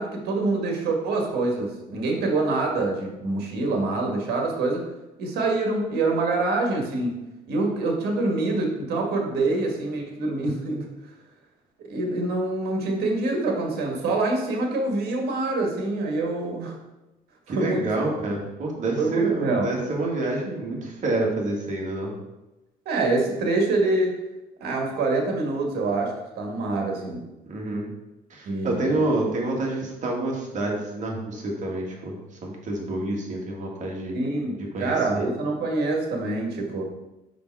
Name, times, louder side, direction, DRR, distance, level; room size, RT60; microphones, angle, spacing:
voice 1, 0.0-4.9 5.2-7.2 7.5-10.9 11.9-16.8 17.5-17.9 19.0-19.7 22.8-24.2 24.6-27.3 28.4-29.0 34.1-36.8, right 2 dB, 70° right, 1 dB, 1.8 m, -25 dB
voice 2, 17.5-22.1 27.5-27.9 28.3-32.1 32.4-34.2 34.7-35.3, right 2 dB, 45° right, -1 dB, 2.0 m, -28 dB
5.5 x 5.1 x 4.7 m, 0.99 s
cardioid pair, 110°, 17 cm